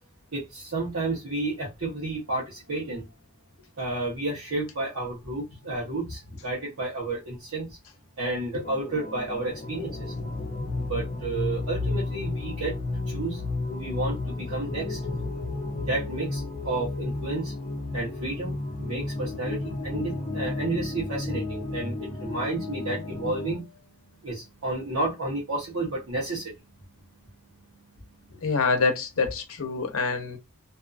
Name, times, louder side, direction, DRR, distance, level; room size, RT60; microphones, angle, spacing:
voice 1, 0.3-3.0 3.8-7.7 8.2-10.0 10.9-12.7 13.1-13.4 13.7-15.0 15.9-17.5 17.9-19.6 19.8-23.6 24.2-26.5, right 2 dB, 70° right, 1.0 m, -31 dB
sound 1, 8.6-23.5, left 2 dB, 35° left, 0.7 m, -32 dB
voice 2, 28.4-30.4, left 4 dB, 70° left, 0.7 m, -26 dB
2.7 x 2.4 x 2.4 m
head